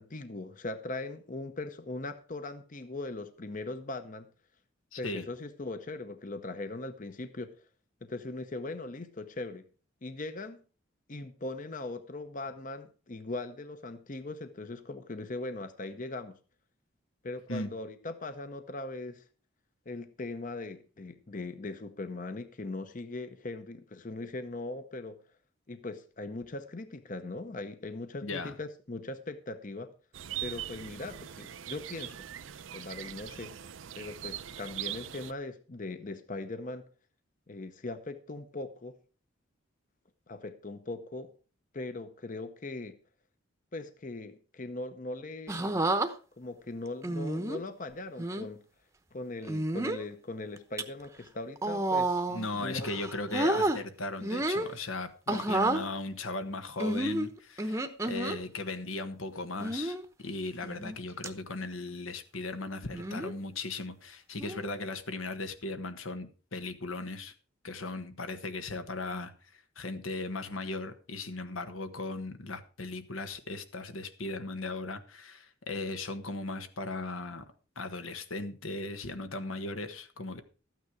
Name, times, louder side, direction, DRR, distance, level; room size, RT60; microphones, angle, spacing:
voice 1, 0.0-4.3 5.0-7.5 8.0-9.6 10.0-10.6 11.1-16.4 17.2-19.2 19.9-25.2 25.7-29.9 30.4-32.3 32.7-33.5 34.0-36.9 37.5-39.0 40.3-41.3 41.7-43.0 43.7-45.8 46.4-48.6 49.1-52.9 55.3-55.4, left 2 dB, 40° left, 10 dB, 0.8 m, -40 dB
voice 2, 4.9-5.2 17.5-17.7 28.2-28.6 52.3-67.3 67.6-77.4 77.7-80.4, left 2 dB, 90° left, 9 dB, 1.3 m, -37 dB
sound 1, 30.1-35.3, right 11 dB, 75° right, 0.6 m, -41 dB
sound 2, 45.5-46.1 47.0-47.6 48.2-48.5 49.4-50.0 50.6-50.8 51.6-52.5 52.8-53.8 54.2-54.7 55.3-55.8 56.8-58.4 59.6-60.0 60.6-61.0 61.2-61.3 62.9-63.3 64.4-64.7, right 2 dB, 15° right, 0.8 m, -30 dB
13.5 x 9.2 x 4.8 m, 0.37 s
head